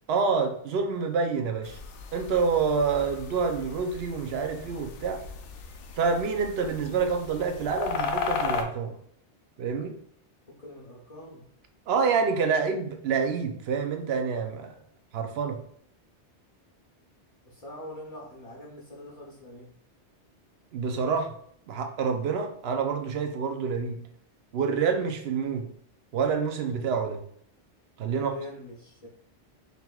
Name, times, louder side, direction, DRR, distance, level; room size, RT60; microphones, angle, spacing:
voice 1, 0.1-1.8 2.1-5.2 6.0-8.9 9.6-9.9 11.9-14.7 15.1-15.6 20.7-21.3 21.7-24.0 24.5-25.6 26.1-27.2 28.0-28.3, right 5 dB, 65° right, 6 dB, 0.8 m, -27 dB
sound 1, 1.6-8.6, left 5 dB, 85° left, 0.9 m, -36 dB
voice 2, 10.5-11.4 17.4-19.7 28.1-29.1, left 1 dB, 35° left, -4 dB, 0.7 m, -43 dB
5.2 x 3.0 x 2.3 m, 0.63 s
omnidirectional pair, 1.2 m